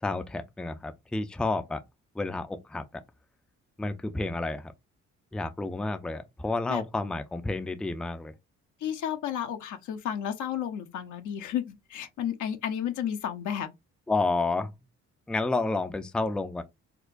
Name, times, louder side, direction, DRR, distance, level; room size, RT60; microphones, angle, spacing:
voice 1, 0.0-1.8 2.1-2.9 3.8-4.7 5.3-8.3 14.1-14.7 15.3-16.6, left 3 dB, 5° left, 0.4 m, -30 dB
voice 2, 8.8-13.7, left 9 dB, 75° left, 0.8 m, -32 dB
4.3 x 2.2 x 2.5 m
cardioid pair, 90°, 30 cm